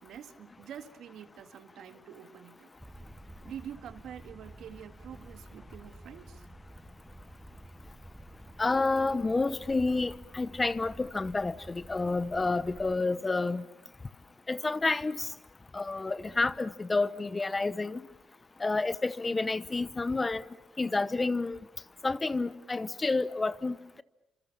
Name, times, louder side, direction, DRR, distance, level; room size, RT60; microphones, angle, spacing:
voice 1, 0.0-2.7 3.4-6.5, right 9 dB, 75° right, 1.9 m, -46 dB
sound 1, 2.8-13.0, right 1 dB, 10° right, 2.2 m, -50 dB
voice 2, 8.6-13.6 14.5-15.3 15.7-18.0 18.6-20.5 20.8-21.6 22.0-24.0, left 3 dB, 25° left, 0.9 m, -29 dB
28.5 x 26.5 x 7.2 m
cardioid pair, 90°, 0 cm